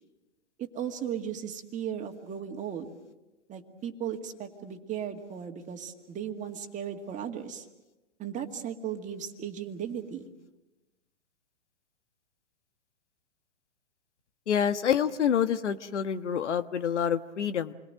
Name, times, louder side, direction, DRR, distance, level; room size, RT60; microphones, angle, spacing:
voice 1, 0.6-2.9 3.5-7.7 8.2-10.3, right 8 dB, 20° right, 5 dB, 2.1 m, -36 dB
voice 2, 14.5-17.7, left 8 dB, 75° left, 10 dB, 1.4 m, -27 dB
28.5 x 22.0 x 7.8 m, 1.1 s
hypercardioid pair, 125°, 35 cm